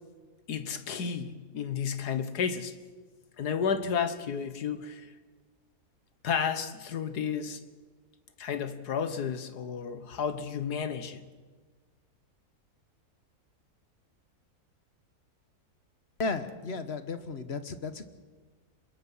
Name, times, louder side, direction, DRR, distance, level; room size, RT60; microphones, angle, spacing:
voice 1, 0.5-2.8 3.4-5.1 6.2-7.6 8.4-11.2, left 7 dB, 85° left, 1.8 m, -32 dB
voice 2, 16.2-18.1, left 4 dB, 45° left, 1.4 m, -34 dB
26.5 x 21.5 x 5.6 m
omnidirectional pair, 1.7 m